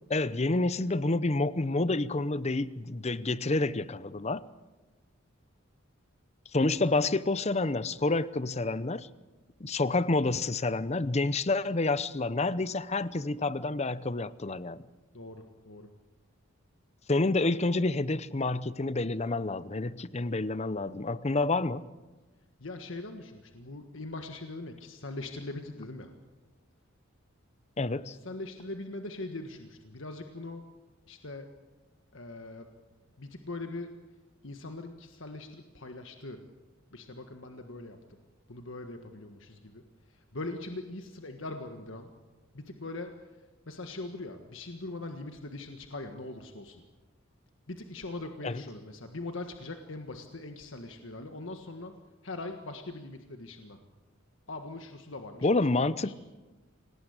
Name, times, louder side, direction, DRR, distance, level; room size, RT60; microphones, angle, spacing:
voice 1, 0.1-4.4 6.5-9.1 9.6-14.8 17.1-21.8 27.8-28.2 48.4-48.6 55.4-56.1, left 2 dB, 30° left, 17 dB, 0.7 m, -28 dB
voice 2, 15.1-15.9 22.6-26.1 28.1-30.6 31.1-31.5 32.1-32.7 33.2-33.9 34.4-36.4 36.9-38.2 38.5-42.1 42.5-46.8 47.7-51.9 52.2-53.8 54.5-56.1, left 2 dB, 65° left, 5 dB, 1.6 m, -41 dB
27.0 x 18.5 x 8.1 m, 1.2 s
head